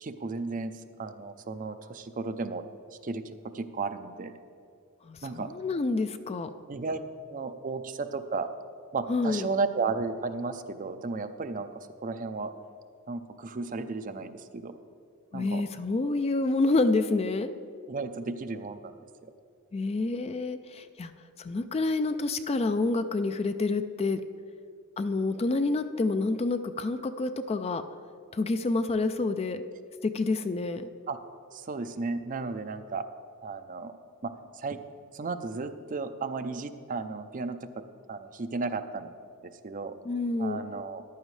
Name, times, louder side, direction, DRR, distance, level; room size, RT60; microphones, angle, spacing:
voice 1, 0.0-2.6 2.9-3.2 3.5-4.3 5.2-5.5 6.7-7.0 7.3-8.5 8.9-12.5 13.1-14.8 15.3-15.6 17.9-18.9 19.2-19.3 31.1-31.2 31.5-33.0 33.4-33.9 34.2-34.8 35.1-37.7 38.1-39.1 39.4-39.9 40.4-41.0, right 4 dB, 35° right, 10 dB, 0.5 m, -34 dB
voice 2, 5.0-6.5 9.1-9.5 15.3-17.5 19.7-21.1 21.4-24.2 25.0-27.8 28.3-29.6 30.0-30.9 40.0-40.6, left 3 dB, 30° left, 10 dB, 0.3 m, -28 dB
14.0 x 10.5 x 3.2 m, 2.4 s
head